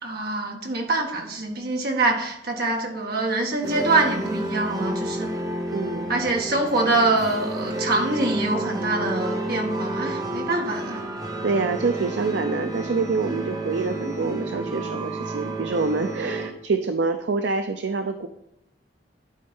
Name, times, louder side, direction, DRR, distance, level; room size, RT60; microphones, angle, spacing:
voice 1, 0.0-5.3 6.1-11.0, right 2 dB, 60° right, 1 dB, 1.9 m, -24 dB
sound 1, 3.6-16.5, right 1 dB, 20° right, 1.0 m, -30 dB
voice 2, 5.7-6.1 11.4-18.3, right 4 dB, 75° right, 8 dB, 0.5 m, -26 dB
12.0 x 4.4 x 5.3 m, 0.86 s
head